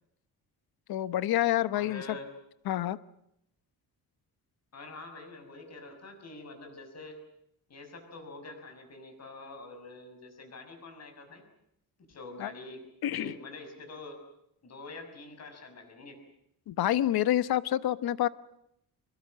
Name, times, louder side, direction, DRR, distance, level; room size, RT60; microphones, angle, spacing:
voice 1, 0.9-2.0 2.7-3.0 12.4-12.5 13.0-13.3 16.7-18.3, left 13 dB, 75° left, 16 dB, 1.1 m, -27 dB
voice 2, 1.7-2.3 4.7-7.2 7.7-11.4 12.1-14.2 14.6-16.2, left 2 dB, 45° left, 6 dB, 6.4 m, -46 dB
26.0 x 22.0 x 7.7 m, 0.77 s
cardioid pair, 160°, 37 cm